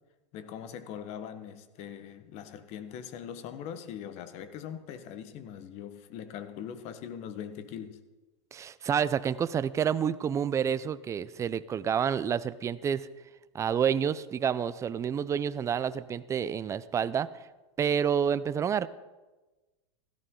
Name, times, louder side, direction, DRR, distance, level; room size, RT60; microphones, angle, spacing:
voice 1, 0.3-8.0, left 9 dB, 45° left, 1.2 m, -41 dB
voice 2, 8.5-13.1 13.5-17.3 17.8-18.9, right 8 dB, 20° right, 0.5 m, -29 dB
16.5 x 14.0 x 3.8 m
supercardioid pair, 125°, 16 cm